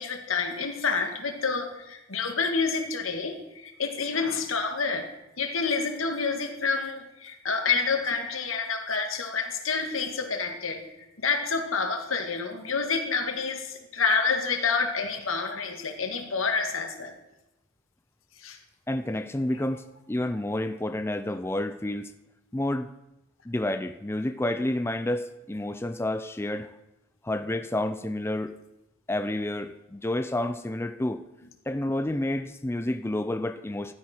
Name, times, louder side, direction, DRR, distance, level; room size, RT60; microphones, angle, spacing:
voice 1, 0.0-5.1 5.4-17.1 18.4-18.6, left 5 dB, 85° left, 1.9 m, -28 dB
voice 2, 18.9-22.1 22.5-22.9 23.5-26.7 27.2-28.5 29.1-31.2 31.7-33.9, left 1 dB, 10° left, 0.5 m, -29 dB
15.5 x 12.0 x 4.5 m
head